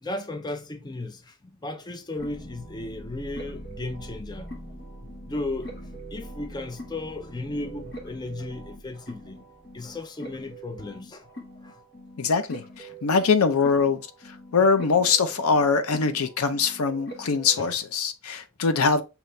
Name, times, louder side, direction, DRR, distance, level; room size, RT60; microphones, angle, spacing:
voice 1, 0.0-4.5 5.0-5.7 6.1-9.4 9.7-11.3 11.6-11.8 17.6-17.7, left 2 dB, 20° left, 0.5 m, -35 dB
sound 1, 2.2-17.6, right 1 dB, 45° left, 1.1 m, -42 dB
voice 2, 12.2-19.0, left 5 dB, 90° left, 0.6 m, -23 dB
5.6 x 3.0 x 3.2 m
head